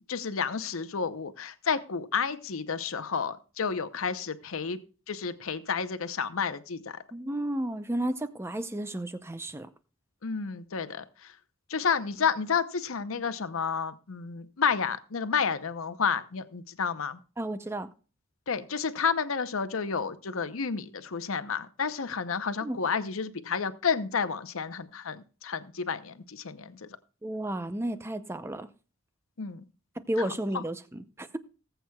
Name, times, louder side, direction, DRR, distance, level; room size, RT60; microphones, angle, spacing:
voice 1, 0.1-4.8 5.1-7.0 10.2-11.3 11.7-17.2 18.5-26.9 29.4-29.6 30.2-30.6, left 6 dB, 75° left, 0.7 m, -31 dB
voice 2, 7.1-9.7 17.4-17.9 22.6-22.8 27.2-28.7 30.1-31.4, right 1 dB, 10° right, 0.6 m, -32 dB
19.0 x 7.9 x 2.3 m
head